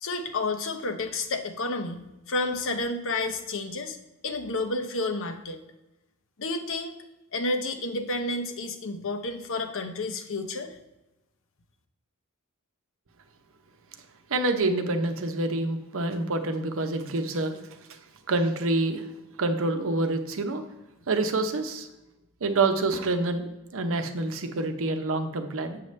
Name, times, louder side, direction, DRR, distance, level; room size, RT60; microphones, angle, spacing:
voice 1, 0.0-4.0 4.2-5.6 6.4-7.0 7.3-10.8, left 2 dB, 60° left, 7 dB, 0.8 m, -30 dB
voice 2, 14.3-17.6 17.9-18.0 18.3-19.1 19.4-20.6 21.1-21.9 22.4-25.8, right 2 dB, 65° right, 7 dB, 0.8 m, -27 dB
7.6 x 6.6 x 3.2 m, 0.97 s
head